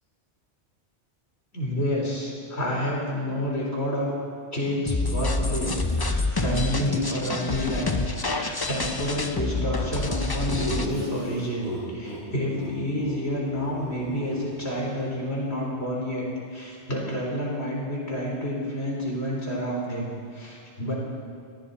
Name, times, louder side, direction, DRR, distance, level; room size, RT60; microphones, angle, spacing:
voice 1, 1.5-4.2 4.5-7.9 8.2-16.3 16.5-20.9, equal, 65° left, -4 dB, 4.4 m, -29 dB
sound 1, 4.9-10.9, left 3 dB, 25° left, 0.7 m, -27 dB
Laughter, 10.4-12.2 12.5-12.7 13.0-13.2 13.4-15.0, equal, 40° left, 4.7 m, -37 dB
21.5 x 15.5 x 4.3 m, 2.3 s
omnidirectional pair, 1.2 m